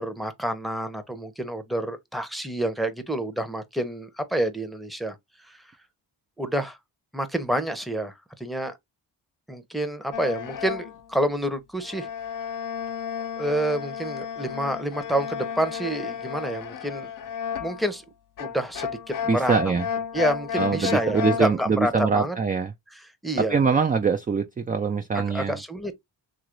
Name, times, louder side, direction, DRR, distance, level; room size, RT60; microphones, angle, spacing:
voice 1, 0.0-5.2 5.5-5.6 6.4-6.8 7.1-8.7 9.5-12.1 13.4-17.1 17.6-18.0 18.4-19.5 20.1-22.4 23.2-23.6 25.1-25.9, right 1 dB, ahead, 0.7 m, -28 dB
sound 1, 10.1-11.0 11.8-17.9 18.4-21.5, left 8 dB, 45° left, 0.5 m, -32 dB
voice 2, 19.3-19.9 20.6-22.7 23.4-25.6, right 5 dB, 20° right, 0.4 m, -23 dB
2.9 x 2.6 x 3.0 m
cardioid pair, 55°, 48 cm